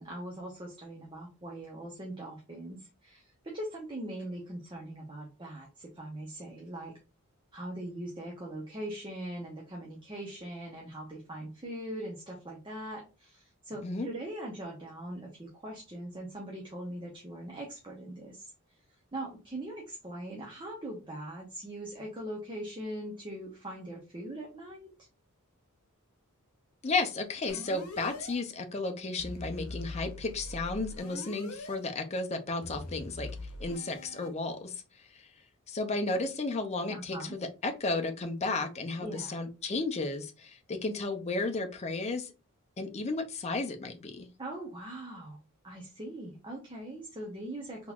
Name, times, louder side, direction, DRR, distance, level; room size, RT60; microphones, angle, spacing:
voice 1, 0.0-6.9 7.5-18.5 19.1-24.9 36.9-37.4 39.0-39.4 44.4-45.4 45.6-47.9, right 1 dB, 20° right, -1 dB, 0.8 m, -41 dB
voice 2, 26.8-33.3 33.6-34.8 35.7-42.3 42.8-44.3, left 3 dB, 30° left, 5 dB, 0.5 m, -33 dB
sound 1, 27.5-28.3 29.2-31.7 32.6-34.3, left 1 dB, 90° left, 0.8 m, -42 dB
3.7 x 2.9 x 2.3 m, 0.31 s
head